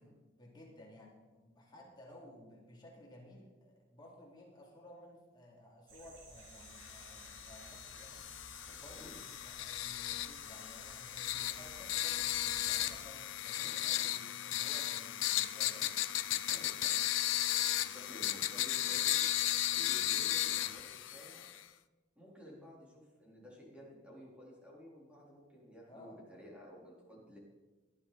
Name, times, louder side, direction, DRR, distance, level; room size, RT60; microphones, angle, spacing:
voice 1, 0.0-8.3 8.8-9.2 9.4-16.0 25.9-26.2, left 1 dB, 25° left, -3 dB, 3.4 m, -56 dB
sound 1, 5.9-13.0, right 2 dB, 80° right, 3.7 m, -56 dB
sound 2, 6.7-21.6, left 13 dB, 80° left, 0.6 m, -35 dB
voice 2, 8.7-9.2 13.6-13.8 16.5-17.0 17.5-19.3 19.7-21.5 22.2-27.4, equal, 5° right, -5 dB, 4.2 m, -54 dB
18.0 x 12.0 x 4.3 m, 1.2 s
head